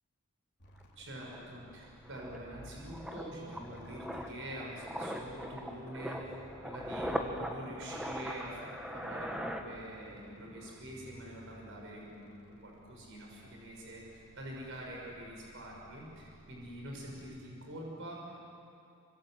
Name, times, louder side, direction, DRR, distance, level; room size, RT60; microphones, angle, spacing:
sound 1, 0.6-17.4, equal, 50° left, 4.2 m, -60 dB
sound 2, 0.8-0.9 1.2-10.3 10.5-10.8, equal, 5° right, 1.7 m, -41 dB
voice 1, 1.0-12.3 12.6-18.4, right 1 dB, 60° right, -2 dB, 6.3 m, -45 dB
27.5 x 26.5 x 8.0 m, 2.6 s
head